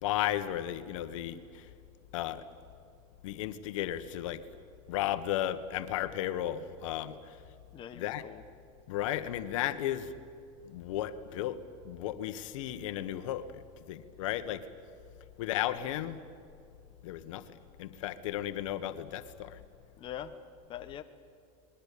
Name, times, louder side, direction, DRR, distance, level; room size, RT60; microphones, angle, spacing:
voice 1, 0.0-1.6 2.1-2.4 3.2-4.4 4.9-7.2 7.9-8.2 8.9-10.1 10.7-11.6 11.8-13.6 13.9-14.6 15.4-16.2 17.0-17.4 17.8-19.6, left 12 dB, 80° left, 10 dB, 1.6 m, -34 dB
voice 2, 7.7-8.4 11.3-11.5 20.0-20.3 20.7-21.0, left 10 dB, 30° left, 7 dB, 1.3 m, -43 dB
29.5 x 22.0 x 8.7 m, 2.3 s
supercardioid pair, 145°, 16 cm